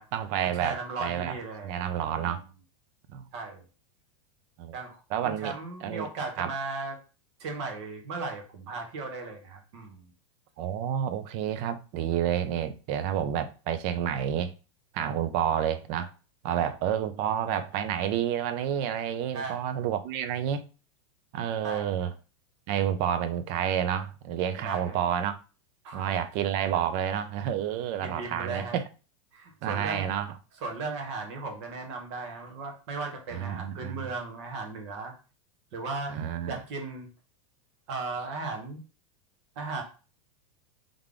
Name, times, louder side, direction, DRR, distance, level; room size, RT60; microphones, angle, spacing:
voice 1, 0.0-1.4 1.6-2.4 3.1-3.2 4.6-4.8 5.1-5.5 5.8-6.1 6.4-6.5 10.6-14.5 14.9-16.1 16.4-20.7 21.3-22.1 22.7-25.3 25.9-28.8 29.6-30.3 33.3-34.1 36.1-36.6, right 9 dB, 35° right, 0.4 m, -29 dB
voice 2, 0.5-1.7 2.1-2.4 3.3-3.6 4.7-7.0 7.4-10.1 16.5-16.7 19.3-19.6 21.6-22.1 24.6-25.0 25.8-26.2 28.0-28.8 29.3-30.1 30.6-35.1 35.7-36.2 36.5-37.1 37.9-38.8 39.5-39.8, right 3 dB, 55° right, 1.4 m, -36 dB
3.5 x 3.4 x 3.6 m
supercardioid pair, 160°, 18 cm